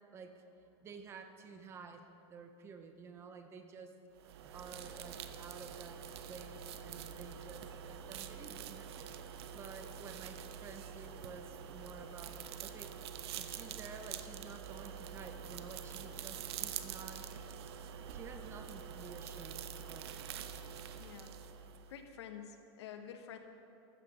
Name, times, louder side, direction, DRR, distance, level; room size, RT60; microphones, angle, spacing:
voice 1, 0.1-0.4 0.8-3.9 4.5-9.1 9.5-12.9 13.4-17.3 18.1-20.1, right 5 dB, 20° right, 7 dB, 0.7 m, -51 dB
sound 1, 4.2-22.0, right 8 dB, 70° right, 0.8 m, -46 dB
voice 2, 20.9-23.4, left 8 dB, 90° left, 6 dB, 1.3 m, -50 dB
14.5 x 14.0 x 3.8 m, 2.8 s
supercardioid pair, 170°, 14 cm